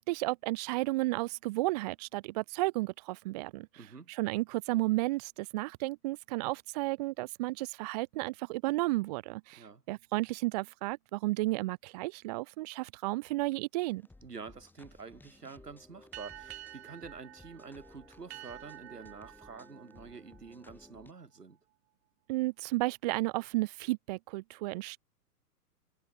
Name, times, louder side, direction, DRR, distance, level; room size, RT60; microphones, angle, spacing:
voice 1, 0.0-3.7 4.1-14.0 22.3-25.0, right 20 dB, 25° right, 0.8 m, -33 dB
voice 2, 3.8-4.1 9.5-9.8 14.2-21.6, right 5 dB, 75° right, 4.9 m, -48 dB
sound 1, 13.8-21.1, left 2 dB, 5° left, 4.8 m, -57 dB
sound 2, 16.1-21.2, right 15 dB, 40° right, 3.1 m, -50 dB
figure-of-eight pair, 115°, 47 cm